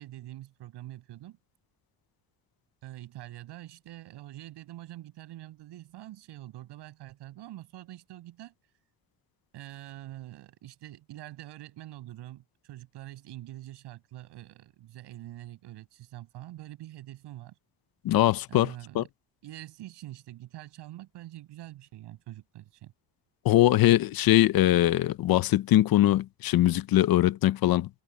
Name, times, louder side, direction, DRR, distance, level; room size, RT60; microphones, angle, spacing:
voice 1, 0.0-1.4 2.8-8.5 9.5-17.5 18.5-19.1 19.4-22.9, right 15 dB, 85° right, 6.4 m, -45 dB
voice 2, 18.0-18.7 18.9-19.0 23.4-27.9, left 14 dB, 60° left, 0.8 m, -22 dB
cardioid pair, 160°, 40 cm